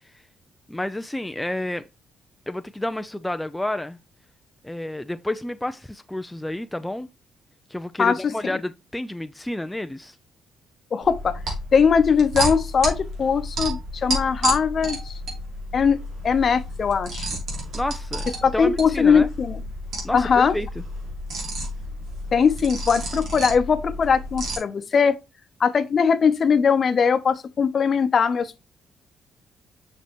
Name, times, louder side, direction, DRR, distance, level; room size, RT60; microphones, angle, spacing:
voice 1, 0.7-1.8 2.5-4.0 4.6-7.1 7.7-10.2 17.7-18.3 18.5-19.3 20.0-20.8, left 1 dB, 10° left, 0.4 m, -30 dB
voice 2, 8.0-8.6 10.9-11.4 11.7-15.1 15.7-16.0 16.2-17.3 18.4-19.6 20.1-20.5 22.3-25.2 25.6-28.6, left 6 dB, 45° left, 0.8 m, -20 dB
sound 1, 11.0-24.6, right 1 dB, 75° right, 2.9 m, -31 dB
6.3 x 5.4 x 3.0 m
cardioid pair, 90°, 0 cm